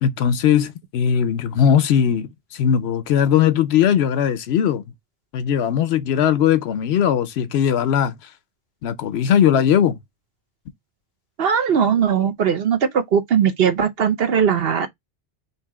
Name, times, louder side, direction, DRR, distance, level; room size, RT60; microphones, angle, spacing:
voice 1, 0.0-4.8 5.3-8.1 8.8-10.0, left 9 dB, 70° left, 0.8 m, -19 dB
voice 2, 11.4-14.9, right 7 dB, 65° right, 1.0 m, -19 dB
3.3 x 2.8 x 4.6 m
omnidirectional pair, 1.1 m